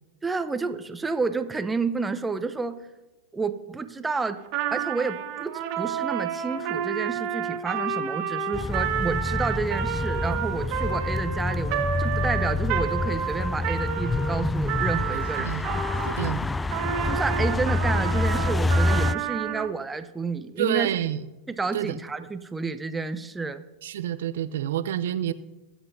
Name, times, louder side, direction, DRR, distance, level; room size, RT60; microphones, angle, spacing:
voice 1, 0.2-2.8 3.3-4.4 4.7-15.8 17.0-20.9 21.5-23.6, right 4 dB, 10° right, 10 dB, 0.7 m, -30 dB
Trumpet, 4.5-16.2 16.7-19.7, right 9 dB, 50° right, 1.7 m, -30 dB
sound 1, 8.5-19.1, left 2 dB, 10° left, 0.3 m, -27 dB
voice 2, 15.1-15.7 16.1-16.5 20.6-21.2 21.7-22.0 23.8-25.3, right 11 dB, 75° right, 14 dB, 0.6 m, -28 dB
23.5 x 7.9 x 2.7 m, 1.1 s
hypercardioid pair, 110°, 0 cm